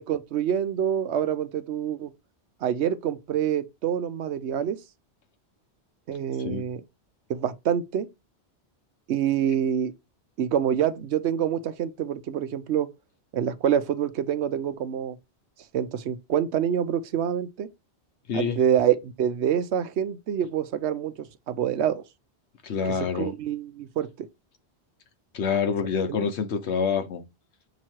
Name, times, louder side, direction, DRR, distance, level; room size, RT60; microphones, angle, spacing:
voice 1, 0.0-2.1 2.6-4.8 6.1-6.8 7.3-8.1 9.1-9.9 10.4-12.9 13.3-15.2 15.7-17.7 18.3-22.0 22.9-24.3 26.0-26.3, right 9 dB, 80° right, 0.9 m, -26 dB
voice 2, 18.3-18.6 22.6-23.3 25.3-27.2, left 6 dB, 85° left, 1.2 m, -26 dB
7.1 x 3.0 x 4.5 m
omnidirectional pair, 1.1 m